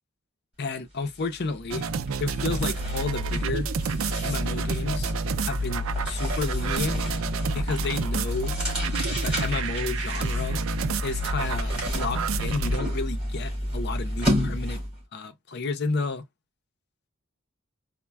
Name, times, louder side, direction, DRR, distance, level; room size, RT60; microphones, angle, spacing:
voice 1, 0.6-1.9 2.2-3.7 4.2-5.1 5.5-7.0 7.5-8.6 9.1-10.6 11.0-14.8 15.1-16.2, left 3 dB, 55° left, 0.6 m, -31 dB
sound 1, 1.1-1.3 1.6-15.0, equal, 5° right, 2.5 m, -30 dB
sound 2, 1.7-12.8, right 4 dB, 90° right, 0.4 m, -31 dB
4.2 x 2.1 x 2.2 m
head